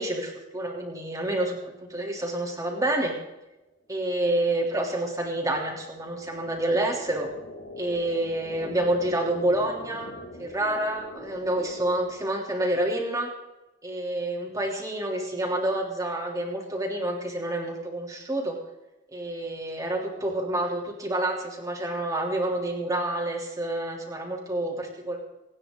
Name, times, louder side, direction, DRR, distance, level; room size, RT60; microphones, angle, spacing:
voice 1, 0.0-1.6 1.9-3.1 3.9-7.3 7.8-10.1 10.4-13.3 13.8-18.6 19.1-25.2, right 1 dB, 20° right, 0 dB, 3.2 m, -28 dB
sound 1, 4.0-12.8, left 1 dB, 75° left, 2.2 m, -44 dB
26.0 x 9.8 x 3.9 m, 0.99 s
head